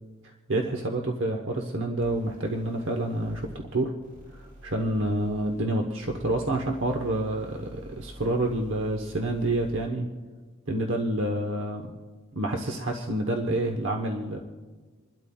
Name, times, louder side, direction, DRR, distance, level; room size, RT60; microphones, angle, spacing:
voice 1, 0.2-3.9 4.3-10.1 10.7-11.9 12.3-14.4, right 1 dB, 60° right, 2 dB, 1.0 m, -28 dB
sound 1, 2.0-10.0, equal, 40° right, 5.3 m, -48 dB
28.5 x 12.0 x 2.3 m, 1.4 s
head